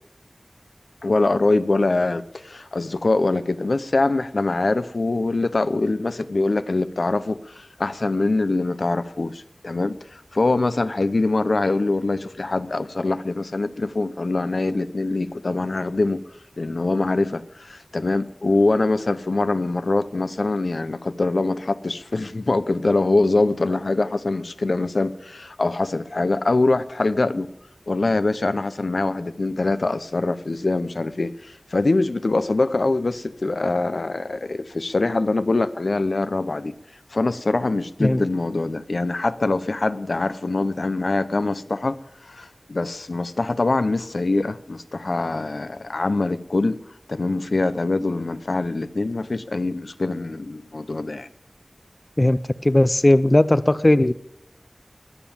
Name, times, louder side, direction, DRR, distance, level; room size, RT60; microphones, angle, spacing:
voice 1, 1.0-16.2 16.6-27.5 27.9-36.7 37.1-42.0 42.3-46.8 47.1-51.3, left 2 dB, 80° left, 0.7 m, -23 dB
voice 2, 52.2-54.1, left 1 dB, 35° left, 0.5 m, -17 dB
21.0 x 7.1 x 7.3 m
wide cardioid pair, 50°, 0 cm